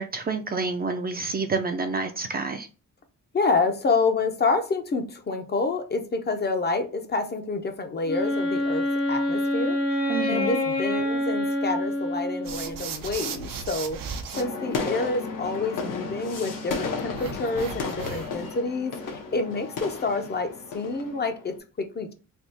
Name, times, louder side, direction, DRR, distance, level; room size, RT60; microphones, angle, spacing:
voice 1, 0.0-2.7 10.1-10.6, right 4 dB, 30° right, 5 dB, 0.4 m, -28 dB
voice 2, 3.3-9.8 10.3-14.0 14.3-22.1, left 3 dB, 30° left, 6 dB, 0.5 m, -28 dB
Wind instrument woodwind instrument, 8.0-12.9, left 1 dB, 50° left, 0.9 m, -26 dB
sound 1, 12.4-14.4 17.1-18.5, right 6 dB, 90° right, 0.7 m, -36 dB
sound 2, 14.3-21.6, left 4 dB, 80° left, 1.0 m, -33 dB
3.4 x 2.3 x 4.1 m, 0.34 s
wide cardioid pair, 150°, 32 cm